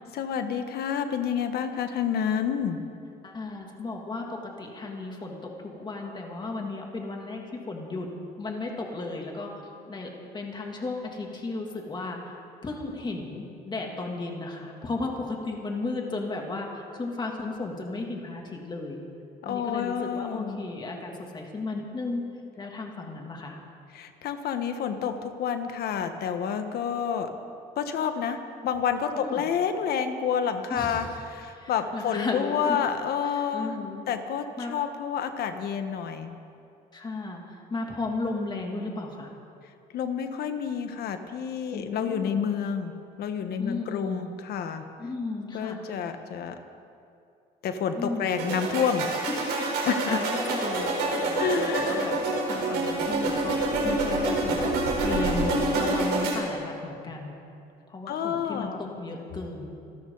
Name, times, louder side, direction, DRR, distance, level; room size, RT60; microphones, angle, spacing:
voice 1, 0.1-2.8 19.4-20.6 23.9-27.3 27.8-33.8 34.1-36.4 39.9-42.9 43.2-44.8 45.5-46.6 47.6-49.1 49.8-50.2 51.4-52.1 58.1-58.8, left 7 dB, 70° left, 7 dB, 1.4 m, -29 dB
voice 2, 3.2-8.1 8.4-9.5 9.9-19.0 19.5-22.2 22.6-23.6 29.1-29.5 30.7-31.1 31.5-32.8 33.2-34.0 34.6-34.7 36.9-39.3 41.7-42.4 43.6-44.3 45.0-46.0 48.0-48.3 49.3-54.6 55.0-57.4 57.9-59.7, left 3 dB, 25° left, 0 dB, 2.8 m, -35 dB
sound 1, 48.3-56.3, right 2 dB, 80° right, 4.3 m, -27 dB
27.0 x 13.5 x 4.1 m, 2.6 s
cardioid pair, 110°, 17 cm